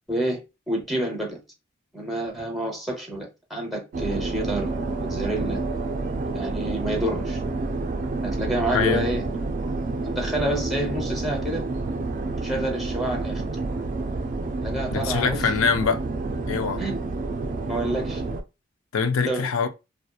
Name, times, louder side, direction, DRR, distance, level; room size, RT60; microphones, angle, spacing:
voice 1, 0.1-1.4 1.9-4.7 5.0-5.6 6.3-7.4 8.2-9.2 10.0-11.6 12.4-13.4 14.6-15.5 16.5-17.0 17.7-18.2 19.3-19.5, right 1 dB, ahead, 0.7 m, -28 dB
sound 1, 3.9-18.4, right 3 dB, 40° right, 0.3 m, -29 dB
voice 2, 8.7-9.1 14.9-16.0 16.5-16.8 18.9-19.7, left 5 dB, 85° left, 0.4 m, -23 dB
2.8 x 2.1 x 2.3 m
head